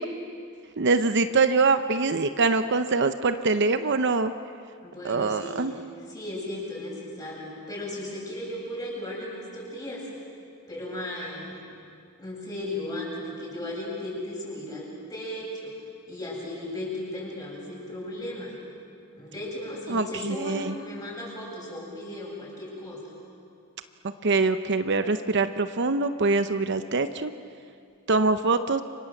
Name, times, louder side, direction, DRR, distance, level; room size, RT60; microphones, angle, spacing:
voice 1, 0.8-4.3 5.0-5.7 19.9-20.7 24.2-27.3 28.1-28.8, right 3 dB, 55° right, 10 dB, 0.7 m, -24 dB
voice 2, 4.8-5.7 6.1-10.0 10.7-11.6 12.2-15.7 16.1-18.6 19.1-23.0, left 1 dB, 20° left, -4 dB, 7.9 m, -36 dB
29.5 x 25.5 x 7.8 m, 2.4 s
head